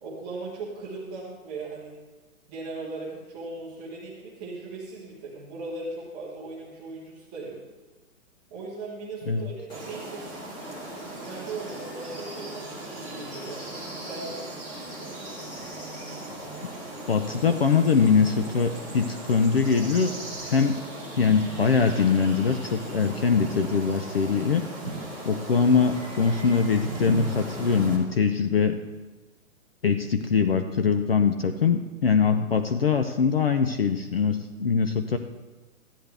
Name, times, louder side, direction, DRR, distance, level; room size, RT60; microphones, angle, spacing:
voice 1, 0.0-1.9 2.5-7.6 8.5-10.4 11.1-13.7 14.0-14.5, right 3 dB, 5° right, -7 dB, 0.7 m, -38 dB
sound 1, 9.7-28.0, right 2 dB, 10° left, 1.3 m, -37 dB
voice 2, 17.1-20.1 20.4-20.8 21.2-24.6 25.2-28.8 29.8-35.2, left 5 dB, 45° left, 8 dB, 0.5 m, -22 dB
14.5 x 10.0 x 3.4 m, 1.2 s
hypercardioid pair, 175°, 43 cm